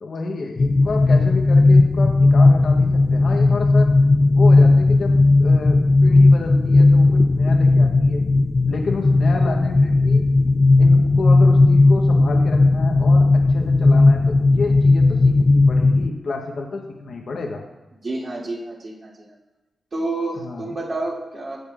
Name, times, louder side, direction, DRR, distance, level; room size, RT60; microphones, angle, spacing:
voice 1, 0.0-3.9 4.3-8.2 8.7-10.2 10.8-17.6 20.4-20.8, left 3 dB, 65° left, 1 dB, 0.9 m, -29 dB
sound 1, 0.6-16.1, left 3 dB, 40° left, 0.3 m, -15 dB
voice 2, 18.0-19.3 19.9-21.6, right 2 dB, 55° right, -7 dB, 3.0 m, -29 dB
15.5 x 6.4 x 2.4 m, 1.1 s
cardioid pair, 85°, 0 cm